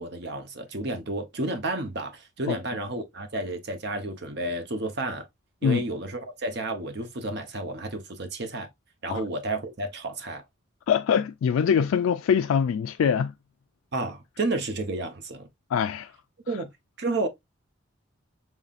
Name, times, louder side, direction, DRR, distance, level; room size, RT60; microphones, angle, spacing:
voice 1, 0.0-5.3 5.6-8.7 9.0-10.4 13.9-15.5 16.5-16.7 17.0-17.3, right 2 dB, 55° right, 0.9 m, -31 dB
voice 2, 10.9-13.3 15.7-16.1, left 7 dB, 90° left, 0.3 m, -23 dB
5.5 x 3.1 x 2.5 m
head